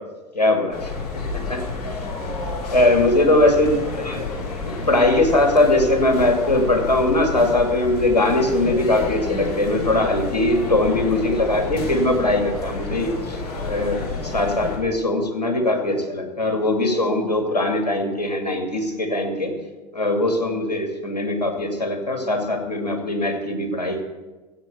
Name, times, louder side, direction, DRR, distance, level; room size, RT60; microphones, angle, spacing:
voice 1, 0.3-0.9 1.3-1.6 2.7-13.4 13.6-19.5 19.9-24.0, left 2 dB, 90° left, 4 dB, 2.5 m, -21 dB
sound 1, 0.7-14.8, left 3 dB, 70° left, 4.0 m, -30 dB
14.5 x 9.0 x 8.0 m, 1.2 s
figure-of-eight pair, 80°, 20 cm